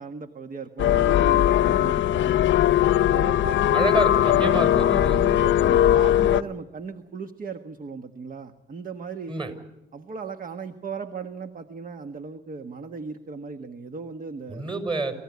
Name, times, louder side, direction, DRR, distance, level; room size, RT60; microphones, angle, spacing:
voice 1, 0.0-2.3 3.1-4.0 4.4-9.4 9.9-14.6, right 5 dB, 45° right, 8 dB, 1.4 m, -37 dB
sound 1, 0.8-6.4, left 12 dB, 70° left, 0.8 m, -20 dB
voice 2, 3.7-5.2 9.3-9.5 14.5-15.1, right 2 dB, 25° right, 9 dB, 6.1 m, -28 dB
28.0 x 15.0 x 9.6 m, 0.96 s
cardioid pair, 90°, 20 cm